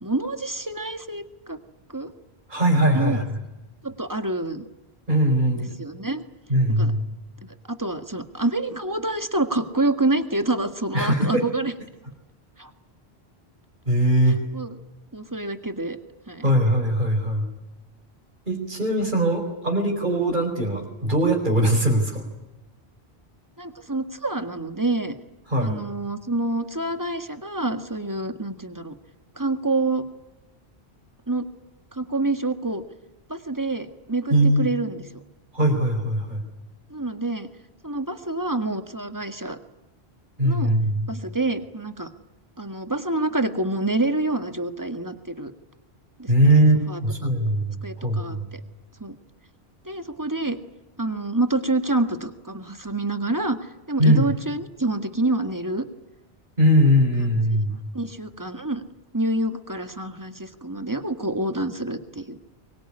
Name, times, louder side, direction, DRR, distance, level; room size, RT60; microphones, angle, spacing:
voice 1, 0.0-1.6 1.9-2.1 2.9-3.2 3.8-4.7 5.5-6.2 6.7-6.9 7.7-11.7 12.6-12.7 14.3-14.8 15.1-16.0 16.3-16.5 23.6-25.1 25.6-29.0 29.4-30.0 31.3-31.5 31.9-32.8 33.3-35.0 36.9-37.5 37.8-39.6 40.4-40.7 41.1-42.1 42.6-45.5 46.2-46.5 46.9-47.0 47.8-48.6 49.0-49.2 49.9-50.6 51.0-55.9 57.9-58.8 59.1-62.4, right 2 dB, 20° right, 8 dB, 1.8 m, -27 dB
voice 2, 2.5-3.4 5.1-5.8 6.5-7.1 10.9-11.4 13.9-14.4 16.4-17.5 18.5-22.2 25.5-25.8 34.3-34.7 35.5-36.4 40.4-41.1 46.3-48.5 54.0-54.2 56.6-57.8, right 1 dB, 45° right, -3 dB, 4.9 m, -20 dB
24.0 x 22.5 x 9.9 m, 1.0 s
omnidirectional pair, 1.1 m